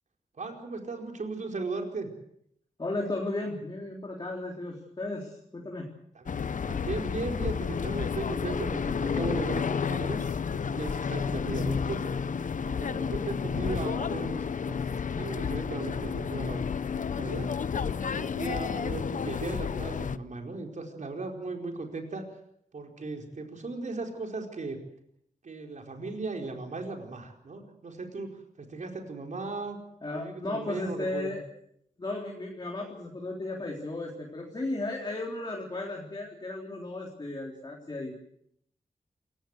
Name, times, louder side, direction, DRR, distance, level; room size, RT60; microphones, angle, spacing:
voice 1, 0.4-2.1 6.1-6.4 6.7-12.0 12.6-16.6 16.9-17.5 18.1-22.2 22.7-24.8 25.4-28.3 28.6-29.8 30.1-31.3, right 3 dB, 60° right, 3 dB, 4.8 m, -37 dB
voice 2, 2.8-5.9 30.0-31.5 32.0-38.2, left 2 dB, 30° left, 0 dB, 3.8 m, -35 dB
sound 1, 6.3-20.2, left 6 dB, 60° left, 0.9 m, -31 dB
28.0 x 17.0 x 8.1 m, 0.72 s
wide cardioid pair, 125°, 15 cm